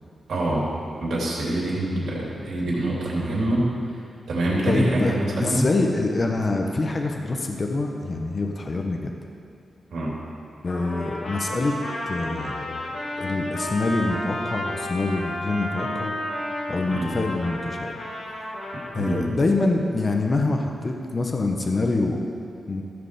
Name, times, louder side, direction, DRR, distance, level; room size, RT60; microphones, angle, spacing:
voice 1, 0.3-0.7 1.0-3.6 4.3-5.7 9.9-10.1 16.9-17.2 19.0-19.2, right 1 dB, 85° right, -5 dB, 3.2 m, -25 dB
voice 2, 4.6-9.1 10.6-11.8 12.1-16.2 16.7-18.0 18.9-22.3 22.7-22.8, left 2 dB, 35° left, 2 dB, 0.9 m, -25 dB
Trumpet, 10.7-19.2, left 1 dB, 65° left, 1.7 m, -32 dB
14.5 x 5.0 x 6.8 m, 2.6 s
wide cardioid pair, 120°, 0 cm